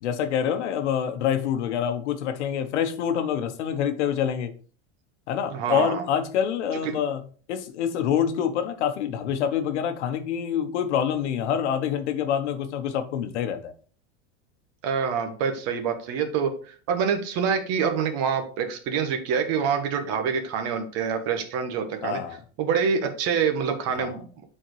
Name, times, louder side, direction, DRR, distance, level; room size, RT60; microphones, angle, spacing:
voice 1, 0.0-4.5 5.3-7.2 7.5-13.7 22.0-22.4 24.0-24.2, left 8 dB, 85° left, 1.0 m, -26 dB
voice 2, 5.5-6.0 6.8-6.9 14.8-22.2 22.6-24.4, right 6 dB, 45° right, 1.1 m, -26 dB
7.4 x 4.3 x 3.1 m
supercardioid pair, 135°, 34 cm